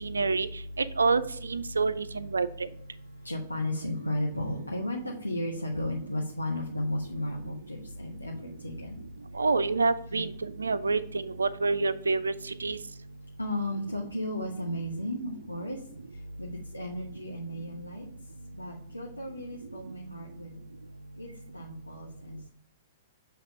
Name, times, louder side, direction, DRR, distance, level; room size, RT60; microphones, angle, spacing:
voice 1, 0.0-0.5 1.0-1.2 1.5-2.7 9.4-12.3 12.6-12.8, right 3 dB, 75° right, 13 dB, 0.4 m, -27 dB
voice 2, 3.1-9.0 10.1-10.2 13.4-15.8 16.1-18.1 18.5-20.6 21.1-22.5, left 1 dB, 85° left, 0 dB, 0.8 m, -34 dB
7.3 x 2.9 x 5.0 m, 0.65 s
figure-of-eight pair, 110°, 0 cm